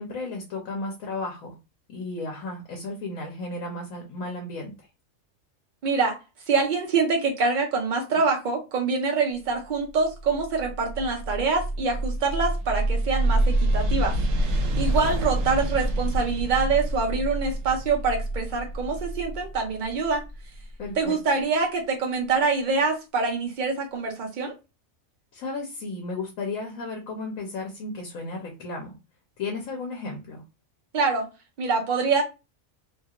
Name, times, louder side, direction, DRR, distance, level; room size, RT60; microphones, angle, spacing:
voice 1, 0.0-1.5 1.9-4.9 20.8-21.1 25.3-28.9 29.4-30.4, left 3 dB, 85° left, 1 dB, 1.1 m, -34 dB
voice 2, 5.8-6.2 6.5-20.2 21.0-24.5 30.9-31.3 31.6-32.2, right 4 dB, 65° right, 2 dB, 0.5 m, -25 dB
sound 1, 10.1-20.9, right 1 dB, 80° right, 1.0 m, -27 dB
2.8 x 2.4 x 2.8 m, 0.27 s
omnidirectional pair, 1.4 m